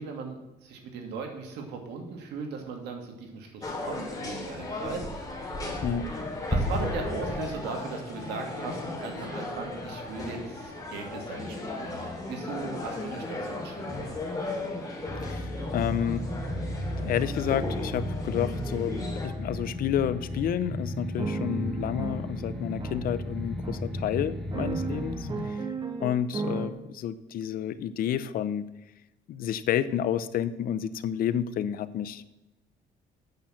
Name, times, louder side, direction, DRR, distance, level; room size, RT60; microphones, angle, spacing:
voice 1, 0.0-5.7 6.0-6.1 6.5-14.2, right 4 dB, 80° right, 3 dB, 2.1 m, -38 dB
sound 1, 3.6-19.3, left 2 dB, 20° left, 2.7 m, -35 dB
sound 2, 8.2-8.3 8.7-13.0 14.4-14.5 15.1-15.4 15.9-16.3 16.9-17.3 17.8-18.1 18.7-18.9 19.5-19.7 20.3-20.5 21.2-26.7, right 4 dB, 25° right, 1.1 m, -38 dB
sound 3, 15.1-25.4, left 1 dB, 5° left, 1.6 m, -34 dB
voice 2, 15.2-16.3 17.0-25.6 26.0-28.6 29.3-32.2, left 10 dB, 60° left, 15 dB, 0.6 m, -30 dB
8.8 x 5.8 x 7.6 m, 0.97 s
cardioid pair, 110°, 17 cm